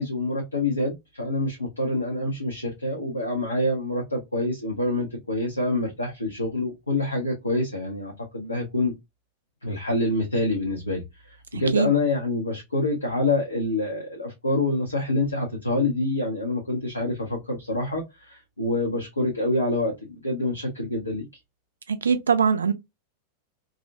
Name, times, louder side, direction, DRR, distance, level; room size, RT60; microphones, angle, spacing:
voice 1, 0.0-8.9 9.6-21.3, left 2 dB, 80° left, 0.6 m, -26 dB
voice 2, 21.9-22.7, right 6 dB, 70° right, 0.4 m, -21 dB
2.4 x 2.0 x 2.6 m
figure-of-eight pair, 90°, 0 cm